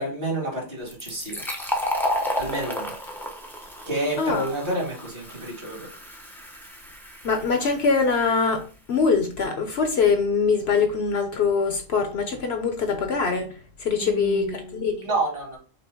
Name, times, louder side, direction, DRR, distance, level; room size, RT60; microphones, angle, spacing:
voice 1, 0.0-1.4 2.4-2.9 3.8-5.9 14.0-15.6, right 1 dB, 45° right, -2 dB, 2.1 m, -29 dB
Fill (with liquid), 0.9-8.2, left 1 dB, ahead, 0.6 m, -32 dB
voice 2, 4.2-4.5 7.2-8.6 8.9-13.5 13.8-14.9, left 5 dB, 60° left, 5 dB, 0.9 m, -23 dB
5.4 x 2.1 x 4.4 m, 0.37 s
omnidirectional pair, 1.3 m